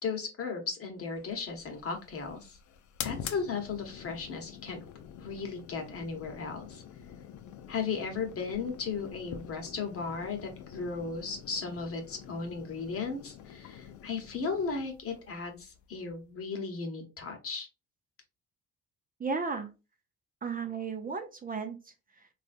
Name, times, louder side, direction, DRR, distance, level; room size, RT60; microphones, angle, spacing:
voice 1, 0.0-2.6 3.0-4.8 5.2-6.8 7.7-17.7, left 5 dB, 50° left, 4 dB, 1.1 m, -36 dB
sound 1, 1.1-16.4, left 9 dB, 75° left, 0.5 m, -46 dB
voice 2, 19.2-19.7 20.4-22.3, right 5 dB, 30° right, 7 dB, 0.6 m, -35 dB
3.4 x 2.5 x 2.5 m, 0.28 s
cardioid pair, 90°, 30 cm